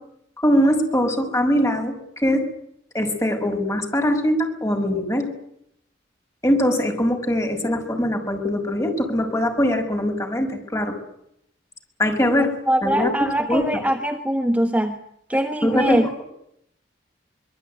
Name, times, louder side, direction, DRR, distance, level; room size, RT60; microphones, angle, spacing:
voice 1, 0.4-2.4 2.9-5.3 6.4-11.0 12.0-12.5 12.8-13.1 13.5-13.6 15.6-16.2, equal, 15° left, 3 dB, 6.1 m, -22 dB
voice 2, 12.4-15.0 15.3-16.1, right 1 dB, 10° right, 5 dB, 1.4 m, -22 dB
25.0 x 22.0 x 9.4 m, 0.75 s
head